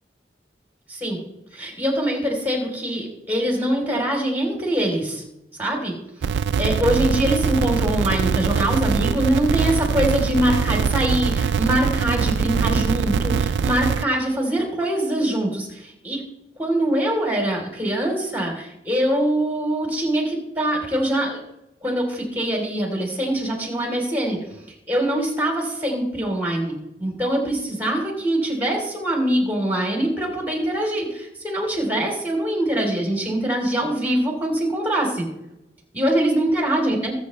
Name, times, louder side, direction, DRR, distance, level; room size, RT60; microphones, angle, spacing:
voice 1, 1.5-5.2 5.6-5.9 6.6-16.2 16.6-21.4 21.8-24.4 24.9-35.3 35.9-37.1, right 1 dB, 10° right, 0 dB, 3.4 m, -23 dB
sound 1, 6.2-14.0, right 6 dB, 80° right, 0.4 m, -22 dB
22.5 x 7.9 x 3.2 m, 0.86 s
head